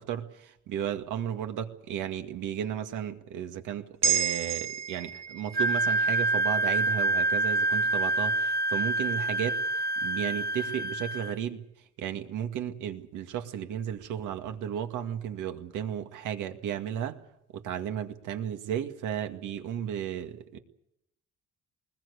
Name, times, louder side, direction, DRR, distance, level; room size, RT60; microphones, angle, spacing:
voice 1, 0.0-9.6 10.0-11.7 12.0-17.2 17.5-20.6, right 9 dB, 90° right, 6 dB, 2.1 m, -34 dB
sound 1, 4.0-8.5 8.9-9.0, right 7 dB, 55° right, 2.1 m, -33 dB
Wind instrument woodwind instrument, 5.5-11.4, right 2 dB, 30° right, 0.9 m, -27 dB
21.0 x 21.0 x 8.2 m, 0.78 s
cardioid pair, 90°, 30 cm